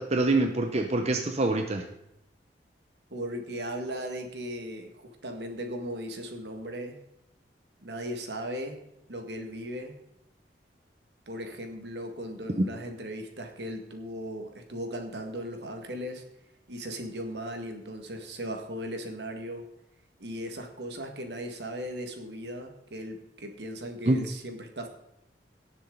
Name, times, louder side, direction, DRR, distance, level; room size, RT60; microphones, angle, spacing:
voice 1, 0.0-1.8 12.6-12.7 24.1-24.2, right 2 dB, 40° right, 5 dB, 0.8 m, -25 dB
voice 2, 3.1-7.0 7.8-8.8 9.1-10.0 11.3-16.2 16.7-19.6 20.2-24.9, equal, 70° right, 4 dB, 1.9 m, -37 dB
17.5 x 7.2 x 3.9 m, 0.84 s
head